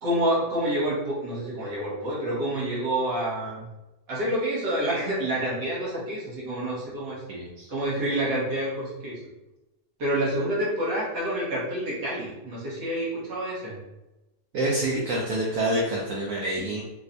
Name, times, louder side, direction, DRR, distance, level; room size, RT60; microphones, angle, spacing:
voice 1, 0.0-3.6 4.1-7.2 7.7-9.2 10.0-13.8, right 1 dB, 90° right, -8 dB, 1.8 m, -28 dB
voice 2, 7.3-7.7 14.5-16.8, right 1 dB, 70° right, -4 dB, 1.0 m, -27 dB
4.4 x 2.2 x 2.6 m, 0.99 s
omnidirectional pair, 1.8 m